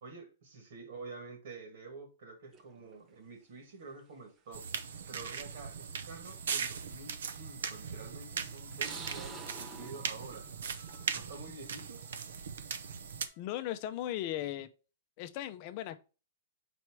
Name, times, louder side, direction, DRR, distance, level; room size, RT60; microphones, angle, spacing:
voice 1, 0.0-4.6 5.1-10.5 11.1-12.0, right 3 dB, 55° right, 1.8 m, -48 dB
sound 1, 2.5-2.9 4.0-4.1 5.2-5.3 5.8-5.9 7.3-7.7 8.4-11.3 11.6-12.1, right 5 dB, 15° right, 0.6 m, -49 dB
sound 2, 4.5-13.3, right 6 dB, 80° right, 0.7 m, -39 dB
Wind instrument woodwind instrument, 6.3-13.4, left 5 dB, 10° left, 0.9 m, -63 dB
voice 2, 13.4-14.7 15.2-16.0, left 13 dB, 30° left, 0.5 m, -37 dB
4.7 x 4.3 x 4.6 m
hypercardioid pair, 175°, 0 cm